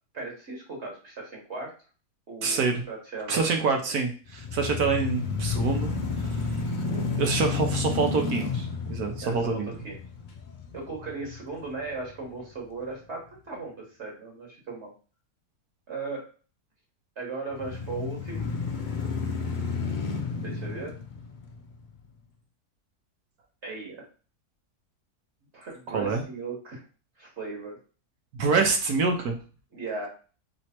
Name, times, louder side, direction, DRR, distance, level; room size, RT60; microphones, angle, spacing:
voice 1, 0.1-1.7 2.3-3.5 6.7-7.2 9.2-10.0 10.7-14.9 15.9-16.2 17.2-18.5 20.4-20.9 23.6-24.0 25.5-26.8 27.2-27.8 29.7-30.1, right 3 dB, 45° right, -1 dB, 1.5 m, -37 dB
voice 2, 2.4-2.8 3.3-5.9 6.2-6.5 7.2-9.7 25.9-26.2 28.3-29.4, right 4 dB, 75° right, 3 dB, 1.3 m, -26 dB
sound 1, 4.3-12.4 12.9-13.0 17.5-22.0, left 5 dB, 75° left, 0.4 m, -31 dB
3.3 x 3.1 x 4.2 m, 0.37 s
omnidirectional pair, 1.6 m